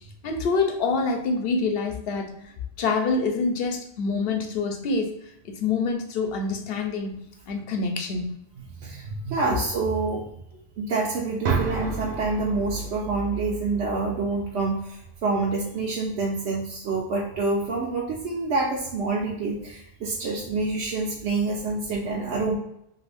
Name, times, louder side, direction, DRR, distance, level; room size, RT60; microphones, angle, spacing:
voice 1, 0.2-2.4 2.8-5.1 5.4-7.2 7.5-8.3 9.5-9.6, left 4 dB, 70° left, 4 dB, 0.8 m, -26 dB
voice 2, 8.8-10.3 10.8-22.6, right 3 dB, 90° right, -3 dB, 0.9 m, -27 dB
sound 1, 11.4-15.4, right 5 dB, 60° right, 0.7 m, -32 dB
2.6 x 2.5 x 3.3 m, 0.77 s
omnidirectional pair, 1.1 m